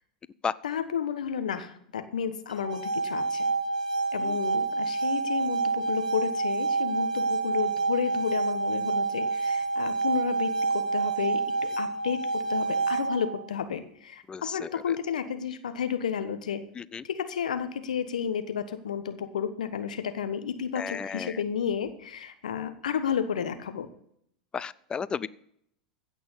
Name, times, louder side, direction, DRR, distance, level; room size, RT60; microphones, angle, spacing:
voice 1, 0.6-3.5 4.1-16.6 17.0-23.9, left 7 dB, 80° left, 1.2 m, -32 dB
sound 1, 2.5-13.5, right 4 dB, 90° right, 1.1 m, -28 dB
voice 2, 14.3-14.7 16.8-17.0 20.8-21.3 24.5-25.3, left 6 dB, 20° left, 0.6 m, -33 dB
16.0 x 6.2 x 7.2 m
hypercardioid pair, 90°, 4 cm